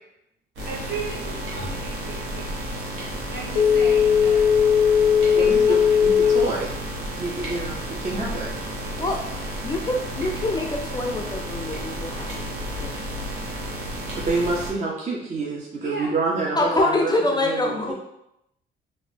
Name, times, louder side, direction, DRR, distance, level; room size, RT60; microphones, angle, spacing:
voice 1, 0.6-2.9 3.3-4.6 5.3-5.7 8.8-9.1 15.8-16.1, right 4 dB, 55° right, -4 dB, 1.1 m, -36 dB
sound 1, 0.6-14.7, right 1 dB, 85° right, 0.9 m, -32 dB
Telephone, 3.5-6.6 7.0-7.1, left 7 dB, 90° left, 0.6 m, -18 dB
voice 2, 5.3-6.7 7.2-8.5 14.1-17.1 17.4-17.9, right 3 dB, 35° right, -3 dB, 0.6 m, -27 dB
voice 3, 9.6-13.0 16.6-17.9, left 2 dB, 20° left, 1 dB, 0.4 m, -25 dB
2.8 x 2.1 x 3.2 m, 0.82 s
cardioid pair, 90°, 20 cm